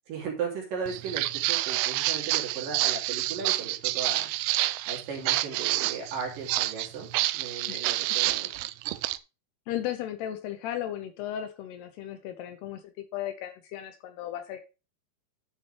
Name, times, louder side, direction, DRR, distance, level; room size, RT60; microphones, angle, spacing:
voice 1, 0.1-4.3 4.9-7.1 7.3-8.5, right 6 dB, 50° right, 0 dB, 4.2 m, -36 dB
Walk footsteps, 0.9-9.2, right 17 dB, 90° right, 2.3 m, -28 dB
voice 2, 9.7-14.6, left 11 dB, 75° left, 8 dB, 2.7 m, -35 dB
11.5 x 6.8 x 3.4 m, 0.30 s
omnidirectional pair, 5.3 m